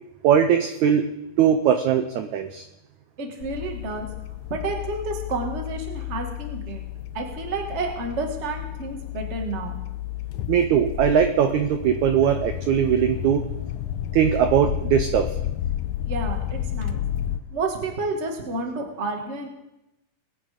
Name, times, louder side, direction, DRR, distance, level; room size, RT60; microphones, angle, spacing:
voice 1, 0.2-1.1 1.4-2.6 10.5-13.4 14.1-15.3, right 8 dB, 80° right, 7 dB, 1.7 m, -20 dB
voice 2, 3.2-4.1 4.5-6.8 7.1-9.8 16.0-17.0 17.5-19.5, right 3 dB, 30° right, 2 dB, 1.2 m, -30 dB
sound 1, 3.4-17.4, left 12 dB, 85° left, 1.7 m, -31 dB
21.0 x 8.9 x 5.1 m, 0.92 s
omnidirectional pair, 4.3 m